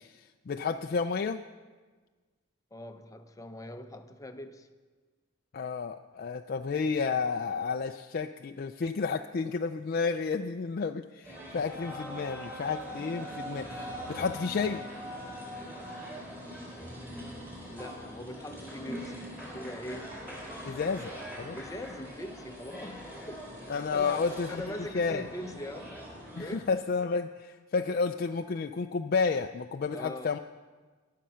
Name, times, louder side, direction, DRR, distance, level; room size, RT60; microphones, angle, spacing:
voice 1, 0.0-1.4 5.5-14.9 20.7-21.1 21.4-21.6 23.7-24.6 24.9-25.3 26.4-30.4, left 5 dB, 45° left, 5 dB, 0.4 m, -31 dB
voice 2, 2.7-4.7 17.7-20.2 21.5-23.5 23.9-25.9 26.4-26.7 29.9-30.4, left 1 dB, 15° left, 7 dB, 0.7 m, -42 dB
sound 1, 11.2-26.6, equal, 10° right, 4.2 m, -42 dB
21.5 x 7.6 x 5.6 m, 1.4 s
head